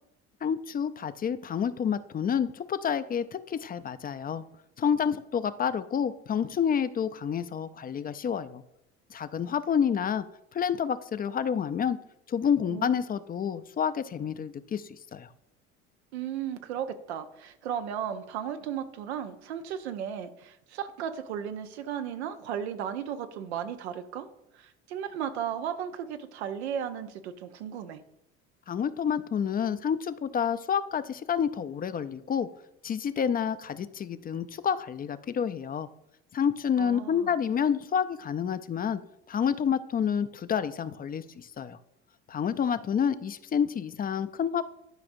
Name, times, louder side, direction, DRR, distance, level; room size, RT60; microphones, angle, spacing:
voice 1, 0.4-4.4 4.8-8.6 9.1-10.2 10.5-12.0 12.3-15.3 28.7-32.5 32.8-35.9 36.3-39.0 39.3-41.8 42.3-44.6, left 7 dB, 30° left, 13 dB, 0.4 m, -29 dB
voice 2, 16.1-24.3 24.5-28.0 36.8-37.3, right 9 dB, 90° right, 9 dB, 0.7 m, -35 dB
12.0 x 4.9 x 2.6 m, 0.80 s
hypercardioid pair, 80°, 32 cm